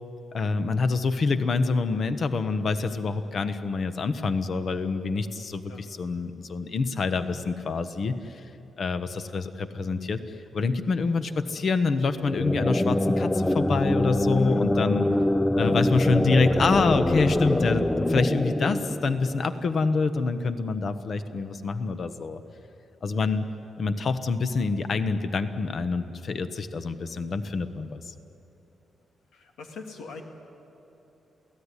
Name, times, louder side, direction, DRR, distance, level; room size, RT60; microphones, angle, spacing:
voice 1, 0.3-8.4 8.8-10.2 10.5-15.1 15.6-22.4 23.0-23.5 23.8-28.1, left 4 dB, 45° left, 10 dB, 1.1 m, -26 dB
sound 1, 12.2-19.8, left 1 dB, 10° left, 0.5 m, -25 dB
voice 2, 29.3-30.2, left 4 dB, 90° left, 3 dB, 2.8 m, -42 dB
28.5 x 17.0 x 9.9 m, 3.0 s
wide cardioid pair, 160°, 0 cm